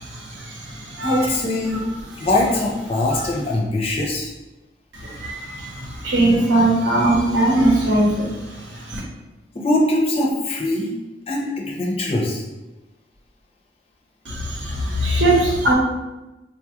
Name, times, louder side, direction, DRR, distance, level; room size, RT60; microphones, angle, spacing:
voice 1, 0.0-1.2 3.1-3.2 5.0-9.0 14.3-15.7, right 1 dB, 75° right, -2 dB, 0.8 m, -20 dB
voice 2, 1.0-1.8 2.2-4.3 9.5-10.9 11.3-12.4, left 1 dB, 30° left, -2 dB, 0.5 m, -22 dB
3.8 x 2.3 x 2.9 m, 1.1 s
head